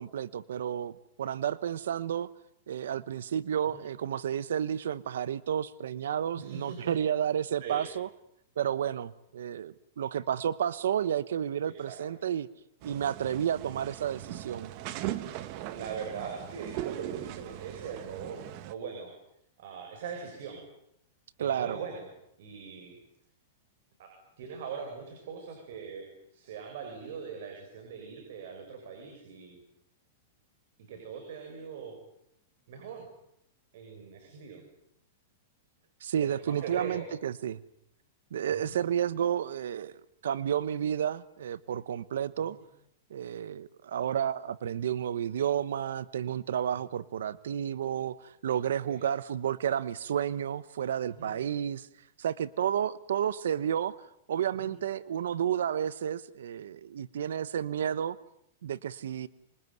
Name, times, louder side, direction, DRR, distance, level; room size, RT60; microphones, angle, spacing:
voice 1, 0.0-2.3 2.7-8.1 8.6-12.5 12.8-14.7 21.4-21.8 36.0-37.6 38.3-42.6 43.1-51.9 52.2-54.0 54.3-58.2 58.6-59.3, right 9 dB, 85° right, 17 dB, 1.0 m, -31 dB
voice 2, 6.3-6.9 7.6-7.8 11.6-12.0 15.7-19.1 19.6-20.6 21.4-22.1 22.4-23.0 24.0-26.1 26.3-29.6 30.9-31.9 32.7-33.0 33.7-34.6 36.2-37.1 38.5-38.8 42.5-42.6 48.9-49.0 51.2-51.3 54.6-54.7, right 6 dB, 60° right, 2 dB, 7.2 m, -41 dB
sound 1, 12.8-18.7, right 14 dB, 40° right, 1.7 m, -39 dB
26.0 x 23.0 x 9.4 m, 0.77 s
supercardioid pair, 160°, 0 cm